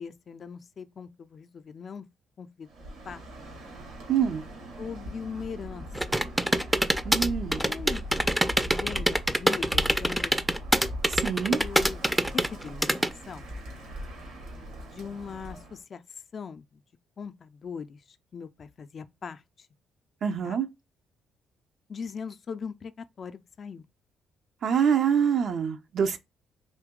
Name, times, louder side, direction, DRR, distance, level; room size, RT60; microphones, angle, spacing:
voice 1, 0.0-2.1 2.4-2.7 3.0-3.2 4.8-6.2 7.3-8.1 8.7-10.6 11.5-12.1 12.3-13.5 14.8-16.0 16.3-16.8 17.2-18.0 18.3-19.4 20.4-20.6 21.9-23.9, left 6 dB, 50° left, 0.5 m, -40 dB
Bird, 2.7-15.8, equal, 80° right, 1.8 m, -39 dB
voice 2, 4.1-4.4 7.0-7.6 11.1-11.6 20.2-20.7 24.6-26.2, right 7 dB, 60° right, 0.6 m, -25 dB
sound 1, 5.9-13.1, equal, 5° right, 0.5 m, -25 dB
4.0 x 2.8 x 3.6 m
supercardioid pair, 55°, 0 cm